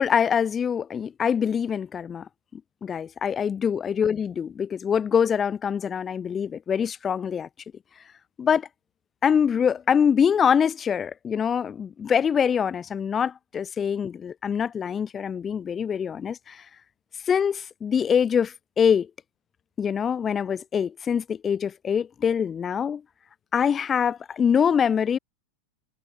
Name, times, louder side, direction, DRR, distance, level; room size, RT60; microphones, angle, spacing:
voice 1, 0.0-2.3 2.5-7.5 8.4-8.7 9.2-16.6 17.3-19.1 19.8-23.0 23.5-25.2, left 7 dB, 20° left, 0.4 m, -24 dB
supercardioid pair, 140°, 0 cm